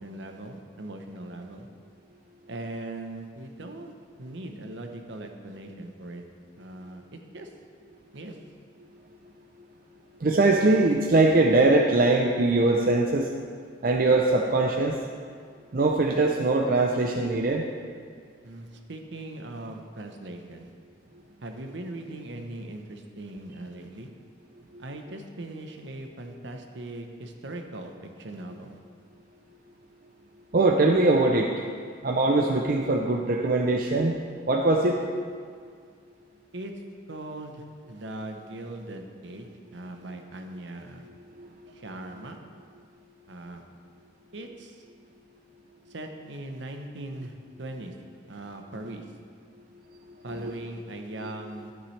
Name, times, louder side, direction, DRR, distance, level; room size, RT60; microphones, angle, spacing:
voice 1, 0.0-1.7 2.5-3.9 4.2-6.2 6.6-7.5 8.1-8.4 18.4-20.7 21.4-24.1 24.8-28.8 36.5-36.7 37.1-41.1 41.7-42.4 43.3-43.6 44.3-44.9 45.9-47.9 48.3-49.1 50.2-51.7, right 1 dB, 70° right, 4 dB, 0.9 m, -40 dB
voice 2, 10.2-13.3 13.8-15.0 15.7-17.7 24.7-24.8 30.5-31.5 32.0-34.2 34.5-35.0 41.4-41.9 50.1-50.6 51.2-51.3, right 2 dB, 45° right, 1 dB, 0.5 m, -22 dB
12.5 x 9.0 x 3.3 m, 2.1 s
head